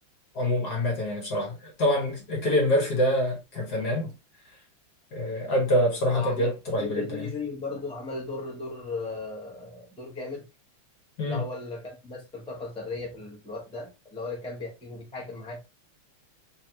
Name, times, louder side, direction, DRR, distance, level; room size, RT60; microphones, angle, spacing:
voice 1, 0.3-4.1 5.1-7.2 11.2-11.4, left 1 dB, 55° left, 1.7 m, -26 dB
voice 2, 6.1-6.5 6.8-10.4 11.2-15.6, left 3 dB, 5° left, 0.8 m, -36 dB
3.9 x 3.2 x 2.9 m
omnidirectional pair, 2.4 m